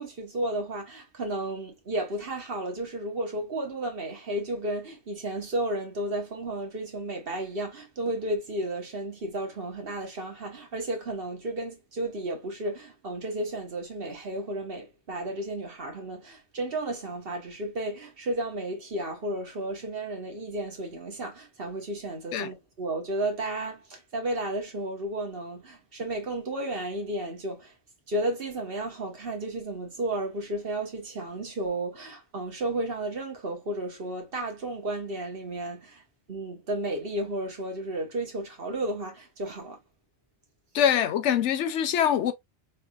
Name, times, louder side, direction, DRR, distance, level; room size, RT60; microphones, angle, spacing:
voice 1, 0.0-27.7 28.1-36.0 36.3-39.8, right 1 dB, 55° right, 1.4 m, -33 dB
voice 2, 40.7-42.3, left 9 dB, 90° left, 0.9 m, -24 dB
3.5 x 3.4 x 2.3 m
omnidirectional pair, 1.2 m